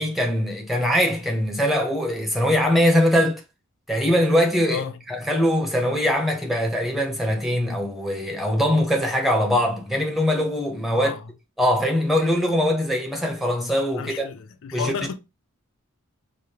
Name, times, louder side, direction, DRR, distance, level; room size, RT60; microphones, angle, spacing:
voice 1, 0.0-3.4 3.9-4.8 5.1-11.1 11.6-14.3 14.7-14.9, equal, ahead, 0.8 m, -22 dB
voice 2, 4.7-5.0 10.9-11.3 14.0-15.1, left 6 dB, 65° left, 0.4 m, -32 dB
4.9 x 2.0 x 2.8 m
head